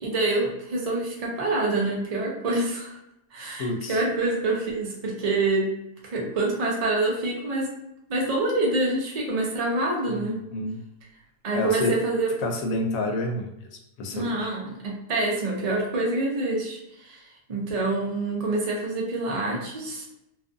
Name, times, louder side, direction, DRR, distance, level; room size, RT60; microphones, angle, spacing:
voice 1, 0.0-3.0 3.3-5.7 6.1-7.7 8.1-10.4 11.4-12.3 14.1-17.2 17.5-20.1, right 2 dB, 75° right, -3 dB, 0.3 m, -26 dB
voice 2, 3.6-4.0 10.1-10.8 11.5-11.9 12.4-14.5, left 2 dB, 75° left, 3 dB, 1.0 m, -29 dB
2.5 x 2.3 x 2.5 m, 0.85 s
omnidirectional pair, 1.5 m